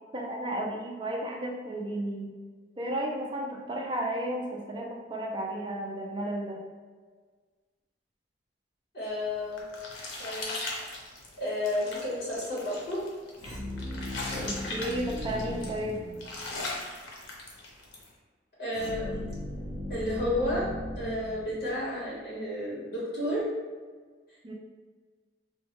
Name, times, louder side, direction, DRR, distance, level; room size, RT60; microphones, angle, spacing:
voice 1, 0.1-2.3 2.8-6.6 14.3-16.0 24.4-24.5, right 1 dB, 25° right, -1 dB, 0.4 m, -33 dB
voice 2, 8.9-9.6 10.2-11.0 11.4-13.0 18.6-19.2 19.9-20.7 21.0-23.5, left 1 dB, 60° left, -7 dB, 1.5 m, -32 dB
sound 1, 9.2-18.1, left 2 dB, 85° left, 0.7 m, -39 dB
sound 2, 13.4-16.7 18.7-22.0, left 1 dB, 20° left, 1.0 m, -38 dB
3.4 x 2.2 x 3.1 m, 1.5 s
head